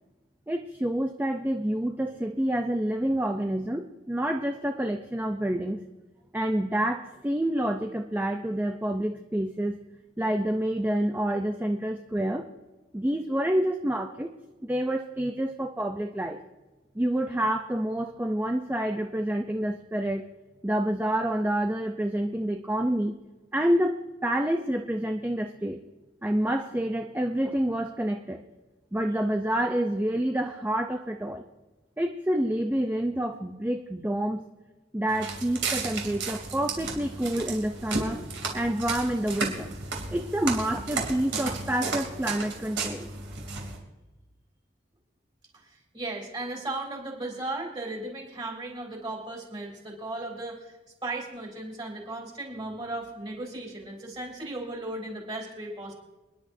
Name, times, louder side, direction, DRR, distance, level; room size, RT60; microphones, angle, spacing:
voice 1, 0.5-5.8 6.3-9.8 10.2-12.5 12.9-14.3 14.6-16.4 16.9-20.2 20.6-23.1 23.5-25.8 26.2-28.4 28.9-31.4 32.0-34.4 34.9-38.2 38.5-39.7 40.1-43.1, right 1 dB, 10° right, 4 dB, 0.5 m, -28 dB
Walk footsteps, 35.1-43.8, right 4 dB, 70° right, 3.0 m, -33 dB
voice 2, 45.6-55.9, right 2 dB, 25° right, 0 dB, 3.3 m, -36 dB
27.0 x 10.5 x 2.7 m, 1.2 s
head